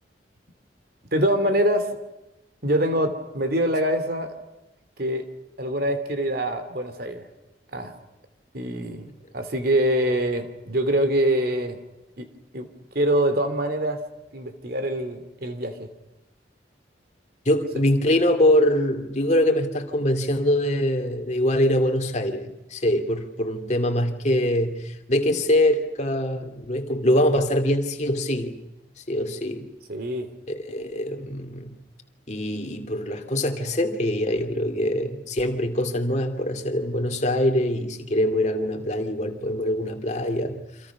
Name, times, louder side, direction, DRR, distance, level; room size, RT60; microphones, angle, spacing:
voice 1, 1.1-2.0 2.6-4.3 5.0-5.2 5.6-7.3 7.7-7.9 8.5-11.8 12.2-12.3 12.5-12.7 12.9-14.0 14.3-15.9 29.9-30.3, right 1 dB, 55° right, 9 dB, 2.8 m, -24 dB
voice 2, 17.5-28.5 29.1-29.7 30.5-31.7 32.3-40.6, left 1 dB, 40° left, 5 dB, 2.3 m, -23 dB
29.0 x 26.0 x 6.1 m, 0.96 s
head